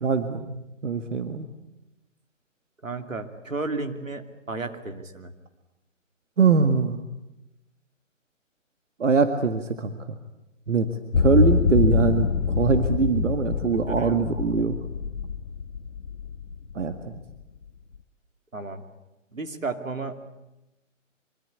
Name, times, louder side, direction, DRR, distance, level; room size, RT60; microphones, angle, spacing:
voice 1, 0.0-1.5 6.4-7.0 9.0-10.2 10.7-10.9 11.2-14.8 16.7-17.2, right 5 dB, 65° right, 7 dB, 2.0 m, -23 dB
voice 2, 2.8-5.3 13.9-14.2 18.5-18.8 19.3-20.2, right 3 dB, 85° right, 6 dB, 2.9 m, -33 dB
sound 1, 11.1-17.2, left 6 dB, 70° left, 1.4 m, -25 dB
25.0 x 24.0 x 8.4 m, 0.96 s
figure-of-eight pair, 135°, 39 cm